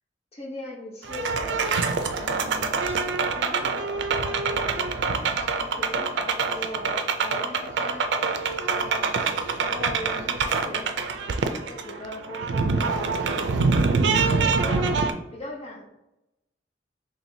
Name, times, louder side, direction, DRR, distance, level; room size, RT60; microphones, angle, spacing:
voice 1, 0.3-1.7 2.2-2.8 3.3-8.0 8.7-11.2 11.7-13.9 14.2-15.0 15.3-15.9, left 1 dB, 35° left, -1 dB, 0.8 m, -39 dB
sound 1, 1.0-15.1, right 4 dB, 80° right, 0.4 m, -25 dB
4.5 x 3.1 x 2.7 m, 0.92 s
head